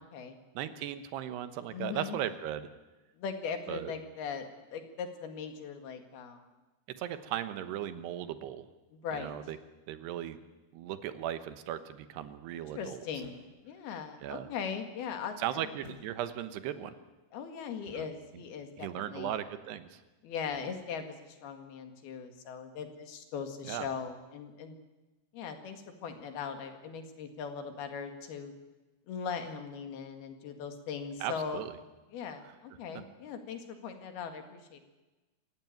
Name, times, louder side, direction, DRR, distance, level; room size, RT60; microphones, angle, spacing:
voice 1, 0.0-0.4 1.7-2.2 3.2-6.4 8.9-9.3 12.6-15.6 17.3-19.4 20.2-24.8 25.3-28.5 29.1-31.6 32.1-34.8, left 6 dB, 70° left, 7 dB, 3.8 m, -40 dB
voice 2, 0.5-2.7 3.7-3.9 7.0-8.6 9.1-9.6 9.9-10.4 10.7-13.0 14.2-14.5 15.4-17.0 17.9-18.1 18.8-20.0 23.6-23.9 31.2-31.8, right 11 dB, 85° right, 11 dB, 3.3 m, -37 dB
sound 1, 13.2-13.7 15.8-16.5 17.9-18.3 20.5-21.0, equal, 15° right, 6.4 m, -54 dB
26.5 x 15.5 x 9.3 m, 1.1 s
omnidirectional pair, 4.7 m